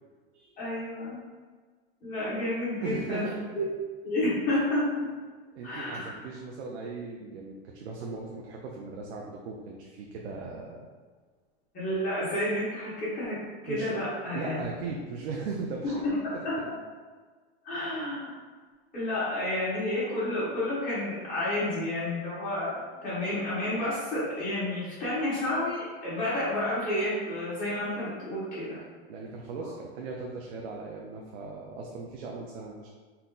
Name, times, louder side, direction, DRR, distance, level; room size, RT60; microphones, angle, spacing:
voice 1, 0.6-1.2 2.0-3.3 3.5-3.6 4.0-5.1 5.6-6.1 11.7-14.5 15.8-16.1 16.4-16.6 17.6-18.3 18.9-28.8, left 1 dB, 25° left, -10 dB, 1.5 m, -30 dB
voice 2, 2.8-3.5 5.5-10.8 13.7-13.9 14.3-15.9 16.3-16.7 29.1-32.9, right 4 dB, 90° right, -1 dB, 0.7 m, -38 dB
4.2 x 2.2 x 3.8 m, 1.5 s
supercardioid pair, 165°, 32 cm